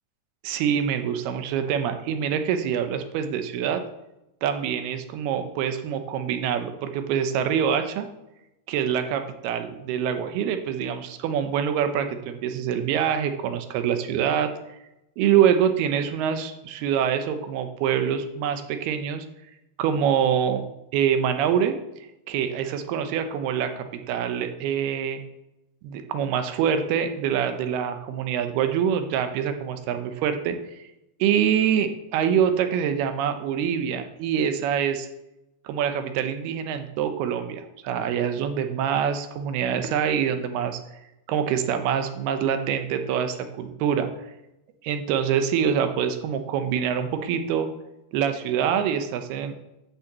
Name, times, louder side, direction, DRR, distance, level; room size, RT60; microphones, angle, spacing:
voice 1, 0.4-3.8 4.4-8.1 8.7-14.5 15.2-19.3 19.8-20.6 20.9-21.8 22.3-25.2 25.8-30.8 31.2-35.1 35.6-40.8 41.3-44.1 44.8-47.7 48.1-49.5, right 8 dB, 85° right, 8 dB, 2.8 m, -25 dB
8.7 x 6.6 x 7.3 m, 0.92 s
omnidirectional pair, 4.5 m